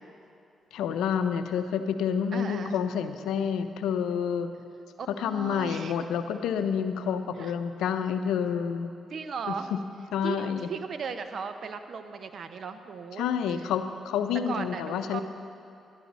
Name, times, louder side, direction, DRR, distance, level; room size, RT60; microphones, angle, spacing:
voice 1, 0.7-4.5 5.2-8.9 9.7-9.8 10.1-10.7 13.2-15.2, left 7 dB, 85° left, 9 dB, 0.6 m, -28 dB
voice 2, 2.3-2.8 5.0-5.9 7.4-7.5 9.1-9.7 10.2-13.3 14.5-15.2, right 5 dB, 60° right, 9 dB, 0.7 m, -36 dB
12.5 x 11.0 x 4.1 m, 2.7 s
supercardioid pair, 65°, 0 cm